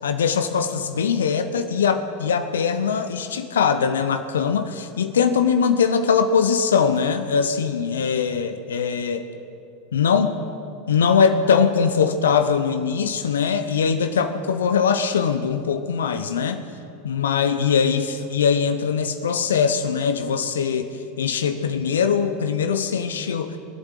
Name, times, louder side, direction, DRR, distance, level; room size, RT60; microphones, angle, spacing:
voice 1, 0.0-9.3 9.9-10.4 10.9-16.6 17.0-23.6, left 6 dB, 75° left, 10 dB, 0.8 m, -21 dB
22.5 x 8.0 x 7.5 m, 2.7 s
figure-of-eight pair, 85°, 0 cm